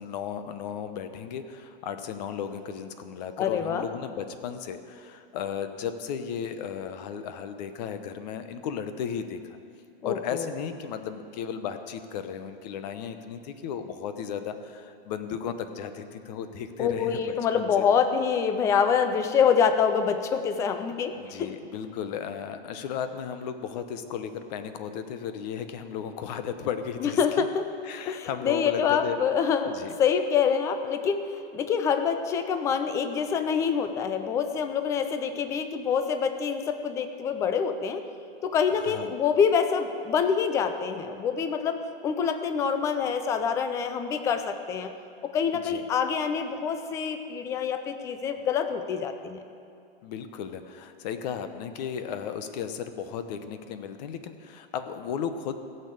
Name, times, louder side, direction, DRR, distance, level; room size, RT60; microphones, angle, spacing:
voice 1, 0.0-9.6 10.0-17.9 21.1-27.5 27.8-29.2 29.7-30.0 38.7-39.1 45.6-45.8 50.0-55.5, left 7 dB, 45° left, 9 dB, 1.0 m, -35 dB
voice 2, 3.4-3.9 10.0-10.5 16.8-21.5 27.0-27.7 28.1-38.0 38.4-44.9 45.2-49.4, left 7 dB, 10° left, 8 dB, 0.3 m, -26 dB
15.5 x 6.7 x 8.2 m, 2.5 s
hypercardioid pair, 150°, 30 cm